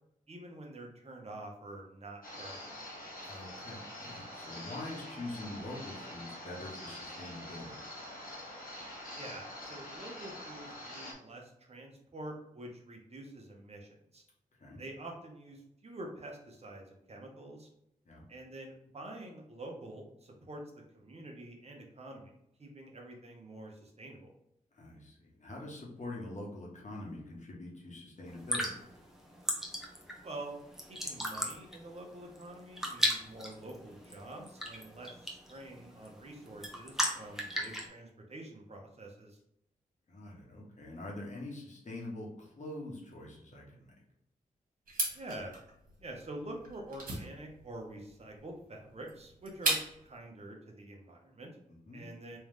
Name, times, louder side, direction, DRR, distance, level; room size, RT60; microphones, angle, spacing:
voice 1, 0.3-2.7 9.2-14.2 14.8-17.7 18.3-22.3 22.6-24.3 30.2-30.6 30.9-39.4 45.1-45.5 46.0-51.5 51.9-52.4, right 1 dB, 45° right, 1 dB, 1.1 m, -47 dB
sound 1, 2.2-11.1, left 1 dB, 75° left, 1.3 m, -45 dB
voice 2, 3.2-7.8 14.6-14.8 18.0-18.2 24.7-28.8 40.1-43.9 51.7-52.1, left 2 dB, 55° left, -3 dB, 1.5 m, -44 dB
sound 2, 28.3-37.9, equal, 5° right, 1.0 m, -37 dB
sound 3, 44.9-50.2, right 2 dB, 70° right, 1.5 m, -37 dB
3.4 x 3.2 x 3.4 m, 0.78 s
cardioid pair, 50°, 15 cm